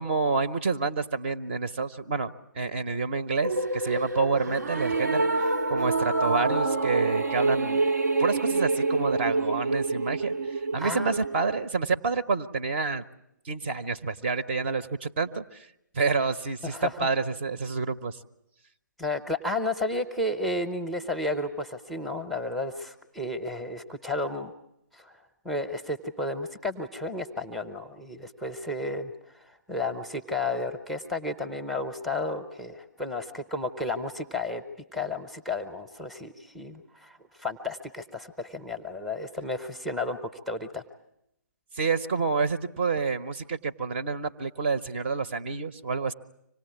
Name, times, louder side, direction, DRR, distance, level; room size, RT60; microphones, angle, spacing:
voice 1, 0.0-2.3 2.5-5.3 5.7-7.8 8.2-10.3 10.7-13.0 13.4-15.4 15.9-18.2 41.8-46.1, right 4 dB, 35° right, 11 dB, 1.0 m, -28 dB
sound 1, 3.4-11.7, right 3 dB, 65° right, 1.0 m, -27 dB
voice 2, 10.7-11.2 16.6-16.9 19.0-24.5 24.9-25.1 25.4-34.6 34.9-40.2 40.5-40.8, left 2 dB, ahead, 7 dB, 0.9 m, -32 dB
25.5 x 19.0 x 9.4 m, 0.81 s
figure-of-eight pair, 135°, 10 cm